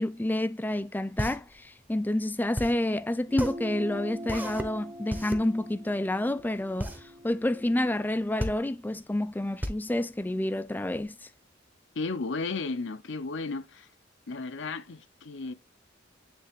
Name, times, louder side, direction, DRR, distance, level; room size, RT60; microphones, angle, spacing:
voice 1, 0.0-11.3, left 1 dB, 10° left, 0.4 m, -29 dB
sound 1, 0.7-11.0, equal, 10° right, 0.9 m, -36 dB
sound 2, 3.3-8.1, equal, 30° right, 1.3 m, -43 dB
voice 2, 11.9-13.9 14.3-15.5, left 3 dB, 65° left, 0.6 m, -34 dB
9.5 x 3.4 x 3.5 m
head